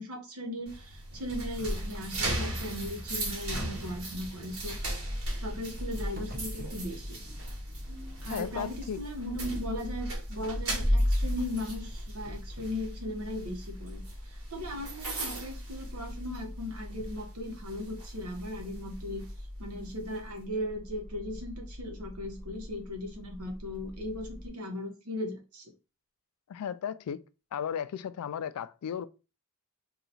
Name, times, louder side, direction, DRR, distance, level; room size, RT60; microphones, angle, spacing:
voice 1, 0.0-5.0 5.4-7.2 8.2-14.0 14.3-19.2 19.6-25.7, left 1 dB, 85° right, 1.0 m, -38 dB
sound 1, 0.7-16.6 16.9-17.2 17.7-19.3, equal, 70° right, 1.5 m, -35 dB
sound 2, 5.4-24.5, left 1 dB, 40° right, 0.8 m, -44 dB
voice 2, 8.2-9.0 26.5-27.2 27.5-29.1, left 8 dB, 90° left, 0.3 m, -35 dB
2.9 x 2.4 x 4.0 m
head